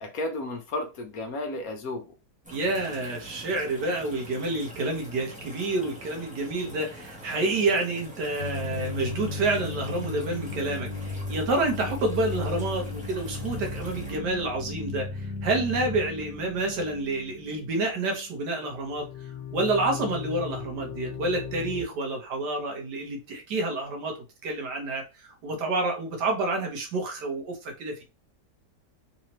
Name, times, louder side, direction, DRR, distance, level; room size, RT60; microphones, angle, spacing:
voice 1, 0.0-2.1, left 2 dB, 65° left, 1.2 m, -33 dB
sound 1, 2.4-14.2, equal, 5° right, 0.9 m, -45 dB
voice 2, 2.5-19.0 19.5-24.2 24.4-28.0, right 2 dB, 80° right, 1.7 m, -29 dB
sound 2, 8.4-18.3 18.6-21.8, left 3 dB, 85° left, 1.3 m, -36 dB
4.0 x 2.9 x 3.0 m
omnidirectional pair, 1.8 m